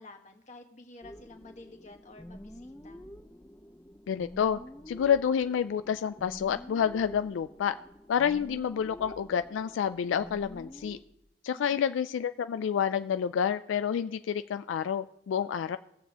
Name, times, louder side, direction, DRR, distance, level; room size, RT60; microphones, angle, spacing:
voice 1, 0.0-3.0 11.5-11.8, left 2 dB, 40° left, 3 dB, 1.4 m, -51 dB
sound 1, 1.0-11.0, left 1 dB, 10° left, 0.5 m, -48 dB
voice 2, 4.1-4.6 4.9-7.8 8.1-11.0 11.4-15.8, left 8 dB, 85° left, 11 dB, 0.3 m, -29 dB
20.5 x 7.3 x 2.8 m, 0.87 s
head